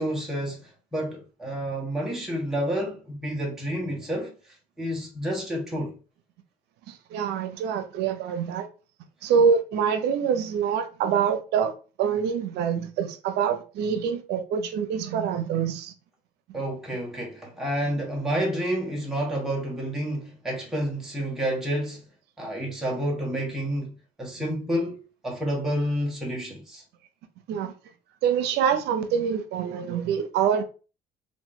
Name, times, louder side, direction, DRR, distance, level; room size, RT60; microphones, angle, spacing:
voice 1, 0.0-4.3 4.8-5.9 16.5-22.0 22.4-23.9 24.2-26.8, equal, ahead, 1.0 m, -29 dB
voice 2, 6.9-8.7 9.2-11.7 12.0-15.9 27.5-27.7 28.2-30.6, right 7 dB, 80° right, 0.7 m, -25 dB
3.0 x 2.6 x 3.6 m
cardioid pair, 110°, 17 cm